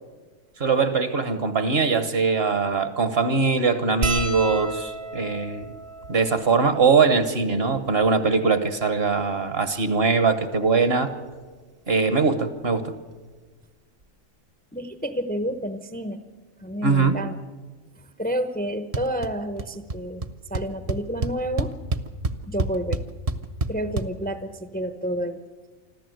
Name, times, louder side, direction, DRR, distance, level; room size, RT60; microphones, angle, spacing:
voice 1, 0.6-5.7 6.1-11.1 11.9-12.9 16.8-17.2, right 4 dB, 50° right, 11 dB, 1.4 m, -21 dB
sound 1, 4.0-8.6 9.4-9.5 9.7-9.9 11.1-11.3 12.8-12.9 13.1-13.3, right 2 dB, 75° right, 3.1 m, -34 dB
voice 2, 14.7-16.2 16.6-17.4 18.2-20.2 20.5-21.7 22.5-23.0 23.7-25.4, equal, 10° left, 9 dB, 0.7 m, -29 dB
sound 2, 18.9-19.3 19.6-20.0 20.2-20.3 20.5-24.1, right 3 dB, 35° right, 0.7 m, -27 dB
25.5 x 14.0 x 7.9 m, 1.4 s
omnidirectional pair, 1.4 m